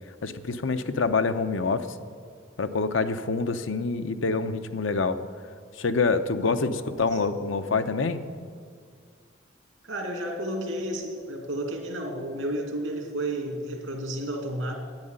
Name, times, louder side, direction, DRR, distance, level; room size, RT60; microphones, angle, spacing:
voice 1, 0.2-1.9 2.6-5.3 5.8-8.2, left 4 dB, 80° left, 10 dB, 0.7 m, -26 dB
voice 2, 6.9-7.2 9.8-14.7, right 1 dB, 90° right, 1 dB, 2.5 m, -32 dB
10.5 x 9.6 x 8.9 m, 2.1 s
head